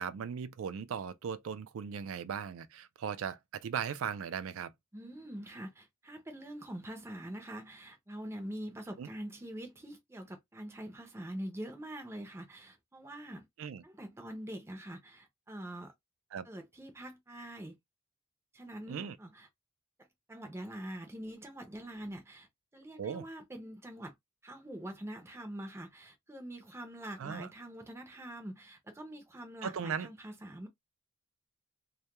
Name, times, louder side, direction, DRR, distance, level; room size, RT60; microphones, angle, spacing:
voice 1, 0.0-4.7 9.0-9.1 13.6-13.8 16.3-16.5 18.9-19.2 23.0-23.3 27.2-27.5 29.6-30.1, right 7 dB, 80° right, 0.4 m, -38 dB
voice 2, 4.9-13.4 13.8-15.9 16.4-17.8 18.5-19.5 20.3-24.1 24.4-30.7, right 1 dB, 15° right, 0.5 m, -44 dB
2.2 x 2.2 x 2.8 m
head